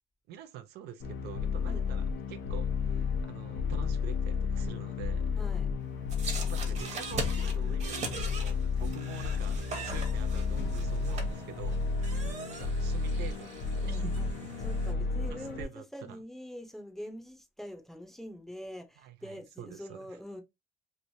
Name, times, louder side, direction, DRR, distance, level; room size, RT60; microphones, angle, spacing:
voice 1, 0.3-5.3 6.5-14.2 15.3-16.2 19.0-20.1, right 10 dB, 75° right, 0.5 m, -47 dB
sound 1, 1.0-15.6, left 5 dB, 80° left, 0.8 m, -32 dB
voice 2, 5.3-5.7 6.4-6.6 11.1-11.3 13.8-14.3 14.6-20.4, equal, ahead, 0.7 m, -44 dB
sound 2, 6.1-14.9, right 4 dB, 45° right, 1.0 m, -41 dB
3.1 x 2.6 x 2.6 m
cardioid pair, 110°, 17 cm